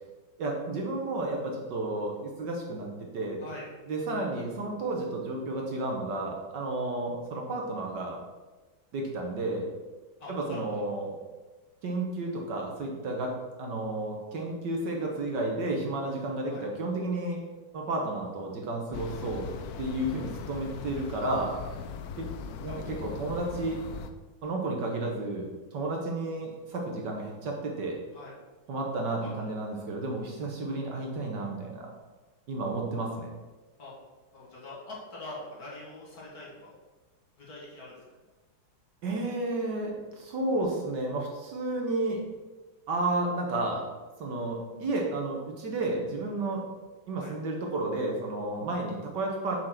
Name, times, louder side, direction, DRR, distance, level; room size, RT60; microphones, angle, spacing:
voice 1, 0.4-2.9 3.1-3.4 3.9-8.2 8.9-9.7 10.3-11.2 11.8-13.3 13.6-17.4 17.7-19.5 19.8-21.5 22.2-22.3 22.6-23.8 24.4-28.0 28.7-31.9 32.5-33.3 39.0-42.2 42.9-43.9 44.2-46.6 47.1-49.6, right 2 dB, 60° right, 0 dB, 1.5 m, -32 dB
voice 2, 10.2-10.8 16.5-16.6 22.7-23.0 28.1-28.3 29.2-29.5 33.8-33.9 34.3-36.8 37.4-38.0 47.1-47.3, left 2 dB, 45° left, -6 dB, 2.5 m, -44 dB
sound 1, 18.9-24.1, left 6 dB, 85° left, 0.8 m, -40 dB
6.6 x 4.6 x 5.8 m, 1.2 s
omnidirectional pair, 2.3 m